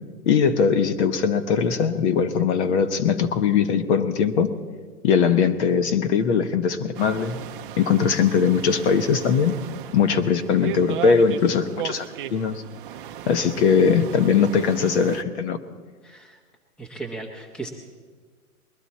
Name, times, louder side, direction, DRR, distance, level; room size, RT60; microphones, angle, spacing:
voice 1, 0.3-4.5 5.0-7.4 7.7-9.5 9.9-12.6 13.3-15.6, left 6 dB, 50° left, 9 dB, 1.0 m, -20 dB
sound 1, 6.9-15.2, right 11 dB, 35° right, 0.6 m, -36 dB
voice 2, 16.0-16.4 16.8-17.7, right 3 dB, ahead, 2 dB, 0.7 m, -36 dB
21.0 x 12.0 x 4.2 m, 1.5 s
hypercardioid pair, 135°, 45 cm